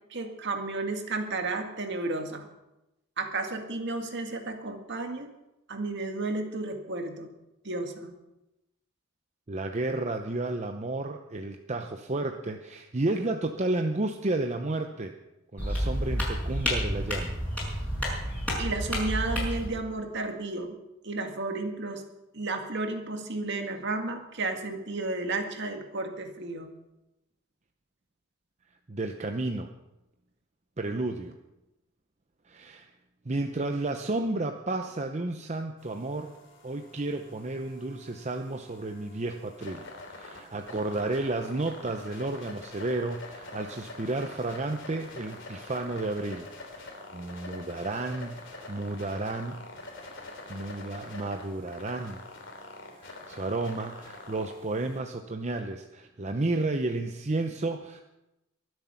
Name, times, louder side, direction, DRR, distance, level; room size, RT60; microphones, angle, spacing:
voice 1, 0.1-2.5 3.2-5.3 5.7-7.3 7.6-8.1 18.6-20.7 21.0-22.0 22.3-26.7, right 3 dB, 60° right, 4 dB, 2.0 m, -32 dB
voice 2, 9.5-15.1 15.5-17.4 28.9-29.7 30.8-31.3 32.5-32.9 33.3-36.3 36.6-46.5 46.8-48.4 48.7-49.6 50.5-52.2 53.0-58.0, right 2 dB, 35° right, 5 dB, 0.8 m, -32 dB
sound 1, 15.6-19.7, equal, 5° left, 6.1 m, -30 dB
sound 2, 35.8-55.0, left 2 dB, 60° left, 3.3 m, -45 dB
23.0 x 8.0 x 5.8 m, 0.94 s
head